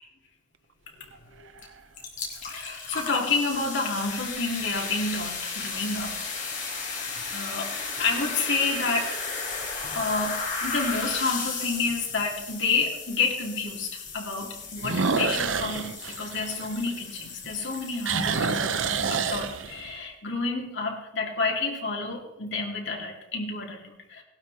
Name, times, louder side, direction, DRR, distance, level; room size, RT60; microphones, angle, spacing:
sound 1, 1.1-1.8 2.5-2.6 7.8-8.3 8.7-8.8 9.4-9.5 9.7-9.8 11.4-11.5 14.8-17.3 17.6-20.0, right 5 dB, 75° right, 0.8 m, -28 dB
sound 2, 1.6-1.7 2.0-19.7, left 4 dB, 40° left, 3.6 m, -35 dB
voice 1, 2.5-6.1 7.3-7.7 8.0-9.1 9.9-13.9 14.1-24.2, left 3 dB, 65° left, 0 dB, 3.0 m, -29 dB
19.0 x 12.0 x 4.2 m, 0.92 s
head